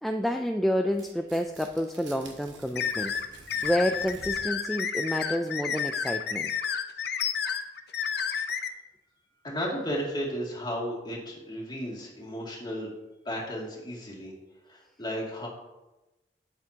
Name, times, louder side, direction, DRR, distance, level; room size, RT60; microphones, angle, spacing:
voice 1, 0.0-6.5, equal, ahead, 4 dB, 0.3 m, -29 dB
Tearing, 0.9-4.6, right 3 dB, 90° right, 1.6 m, -49 dB
sound 1, 2.8-8.7, left 7 dB, 60° left, 0.6 m, -30 dB
voice 2, 9.4-12.9 13.2-14.3 14.6-15.5, equal, 25° left, -4 dB, 2.4 m, -34 dB
12.0 x 8.3 x 2.8 m, 1.0 s
head